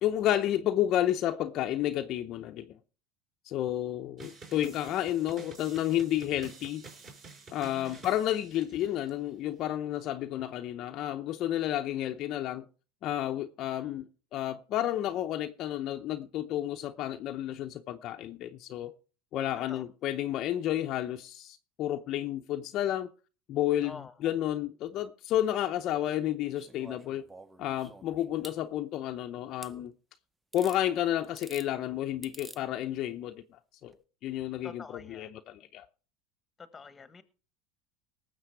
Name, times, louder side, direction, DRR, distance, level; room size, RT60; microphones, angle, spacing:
voice 1, 0.0-2.7 3.4-6.8 7.5-12.7 13.0-18.9 19.3-23.1 23.5-24.0 24.2-27.3 27.6-29.9 30.5-33.4 33.8-33.9 34.2-34.8 35.1-35.8, left 12 dB, 45° left, 0.7 m, -31 dB
sound 1, 4.2-9.1, right 4 dB, 35° right, 6.0 m, -50 dB
voice 2, 7.7-8.1 13.7-14.0 19.6-19.9 23.8-24.2 34.6-35.4 36.6-37.2, left 5 dB, 15° left, 1.3 m, -48 dB
sound 2, 26.6-28.6 29.6-29.7 30.5-30.8 31.2-31.7 32.2-32.6 33.9-34.0, right 2 dB, 10° right, 0.6 m, -49 dB
19.0 x 7.4 x 4.6 m
supercardioid pair, 135°, 0 cm